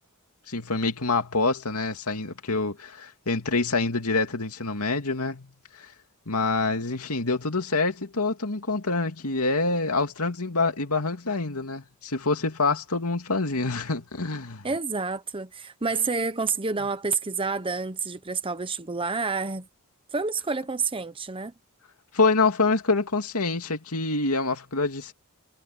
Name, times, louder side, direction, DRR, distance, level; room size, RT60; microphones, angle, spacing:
voice 1, 0.5-5.9 6.3-14.6 22.1-25.1, left 3 dB, 90° left, 2.5 m, -26 dB
voice 2, 14.6-19.7 20.1-21.5, right 4 dB, 25° right, 1.0 m, -29 dB
head